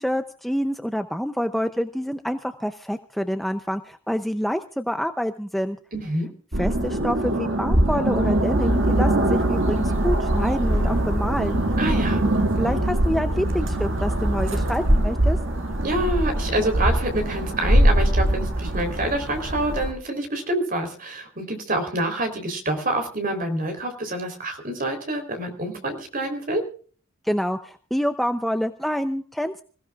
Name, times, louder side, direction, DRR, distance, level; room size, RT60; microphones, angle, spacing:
voice 1, 0.0-5.8 6.6-11.6 12.6-15.4 27.2-29.6, equal, ahead, 7 dB, 0.6 m, -27 dB
voice 2, 5.9-6.3 11.8-12.2 15.8-26.6, right 1 dB, 40° right, 5 dB, 3.7 m, -27 dB
sound 1, 6.5-19.9, right 1 dB, 65° right, 2.1 m, -22 dB
26.5 x 16.0 x 2.4 m, 0.42 s
head